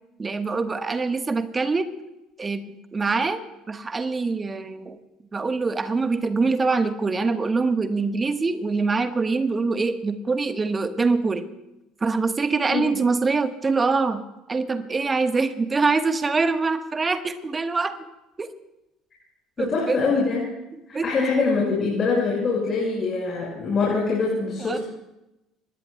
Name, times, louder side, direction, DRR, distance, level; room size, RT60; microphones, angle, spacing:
voice 1, 0.2-1.9 2.4-3.4 3.7-5.0 5.3-11.5 12.0-14.2 14.5-18.0 18.4-18.5 19.6-20.0 20.9-21.1 24.6-24.8, right 4 dB, 20° right, 9 dB, 1.2 m, -24 dB
voice 2, 19.6-20.4 20.9-24.8, left 4 dB, 35° left, -4 dB, 5.5 m, -24 dB
25.5 x 20.0 x 2.3 m, 0.93 s
figure-of-eight pair, 60°, 0 cm